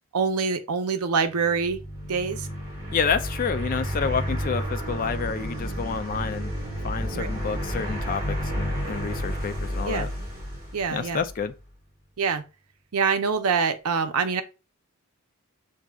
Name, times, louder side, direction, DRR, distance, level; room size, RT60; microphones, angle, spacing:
voice 1, 0.1-2.5 7.1-7.3 9.9-10.1 10.7-11.2 12.2-12.4 12.9-14.4, right 5 dB, 90° right, 0.6 m, -25 dB
sound 1, 1.3-11.5, equal, 15° right, 1.7 m, -31 dB
voice 2, 2.9-6.5 6.8-10.1 10.9-11.5, left 6 dB, 40° left, 0.3 m, -29 dB
6.1 x 2.6 x 2.3 m
head